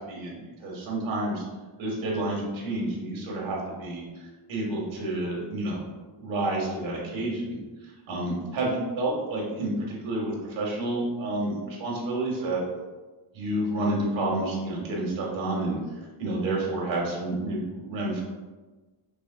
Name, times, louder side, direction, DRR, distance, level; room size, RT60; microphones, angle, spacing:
voice 1, 0.1-1.4 1.8-4.0 4.5-5.8 6.1-7.6 8.1-12.6 13.3-15.8 16.2-18.2, right 2 dB, 70° right, -3 dB, 1.5 m, -29 dB
5.0 x 3.6 x 2.2 m, 1.2 s
cardioid pair, 110°, 47 cm